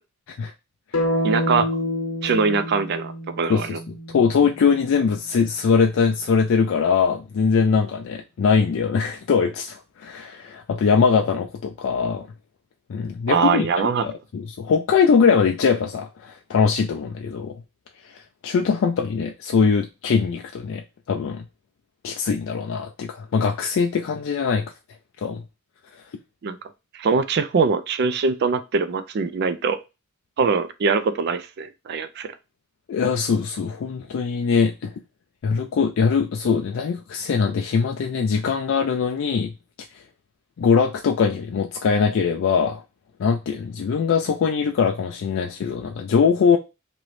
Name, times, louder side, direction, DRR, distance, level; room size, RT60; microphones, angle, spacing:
sound 1, 0.9-5.0, left 1 dB, 75° left, 0.8 m, -28 dB
voice 1, 1.2-1.7 2.2-3.8 13.3-14.0 26.4-26.6 26.9-29.8 30.4-32.3, right 5 dB, 50° right, 0.3 m, -22 dB
voice 2, 3.5-12.3 12.9-13.7 14.0-17.5 18.0-21.4 22.0-24.7 25.2-25.4 32.9-34.9 35.4-39.5 39.9-40.0 40.6-42.8 43.2-46.6, left 5 dB, 60° left, 0.3 m, -22 dB
3.0 x 2.6 x 3.1 m
head